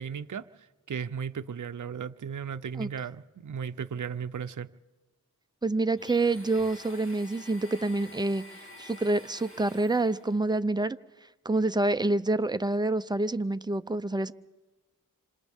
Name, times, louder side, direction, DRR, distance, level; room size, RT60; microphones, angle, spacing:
voice 1, 0.0-4.7, right 7 dB, 60° right, 0.7 m, -36 dB
voice 2, 5.6-8.4 8.8-11.0 11.4-14.3, right 2 dB, 15° right, 0.6 m, -27 dB
Domestic sounds home sounds, 6.0-10.4, left 1 dB, 40° left, 2.9 m, -49 dB
27.0 x 26.5 x 3.6 m
wide cardioid pair, 55°, 33 cm